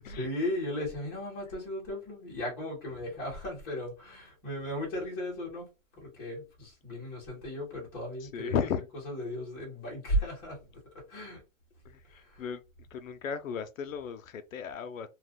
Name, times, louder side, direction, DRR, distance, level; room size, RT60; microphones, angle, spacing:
voice 1, 0.0-5.7 5.9-8.6 9.1-10.6 11.1-11.4 12.1-12.4, equal, 10° left, 0.9 m, -36 dB
voice 2, 8.2-8.8 11.8-12.6 12.9-15.1, left 7 dB, 90° left, 0.6 m, -35 dB
2.4 x 2.3 x 3.5 m
hypercardioid pair, 175°, 39 cm